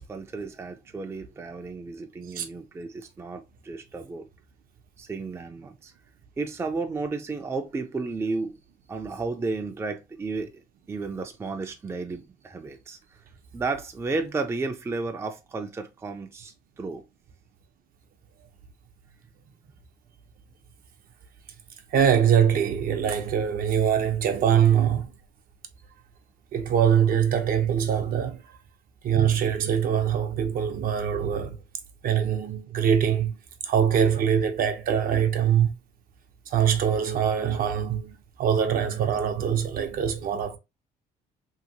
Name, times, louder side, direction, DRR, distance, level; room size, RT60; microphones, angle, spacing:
voice 1, 0.0-4.3 5.0-5.9 6.4-8.6 8.9-10.6 10.9-13.0 13.5-17.0, right 3 dB, 15° right, 0.4 m, -33 dB
voice 2, 21.9-25.1 26.5-28.4 29.0-31.6 32.0-33.4 33.6-35.7 36.5-40.6, right 8 dB, 60° right, 0.7 m, -23 dB
2.9 x 2.8 x 2.6 m
cardioid pair, 110°, 17 cm